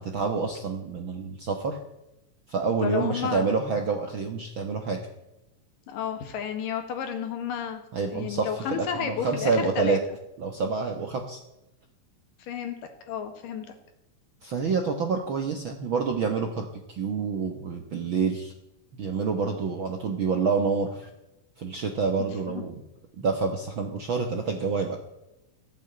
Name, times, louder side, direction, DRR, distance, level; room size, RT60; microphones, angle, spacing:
voice 1, 0.0-1.8 2.5-5.0 7.9-10.0 10.4-11.4 14.4-18.5 18.9-21.1 21.6-22.7 23.2-25.0, right 4 dB, 60° right, 4 dB, 1.3 m, -28 dB
voice 2, 2.8-3.5 5.9-7.8 8.1-10.0 12.4-12.8 13.1-13.7 22.5-22.6, left 8 dB, 80° left, 6 dB, 3.3 m, -32 dB
15.0 x 8.2 x 8.9 m, 0.95 s
omnidirectional pair, 3.9 m